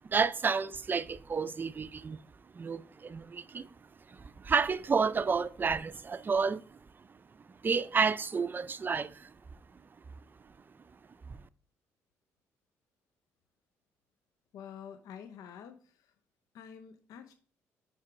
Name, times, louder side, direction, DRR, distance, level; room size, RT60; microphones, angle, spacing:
voice 1, 0.1-2.2 2.5-3.7 4.1-6.6 7.6-9.3 11.3-11.4, right 5 dB, 35° right, 0.4 m, -30 dB
voice 2, 14.5-16.1 16.5-17.3, left 8 dB, 75° left, 0.5 m, -48 dB
4.6 x 4.4 x 4.9 m
supercardioid pair, 65°, 6 cm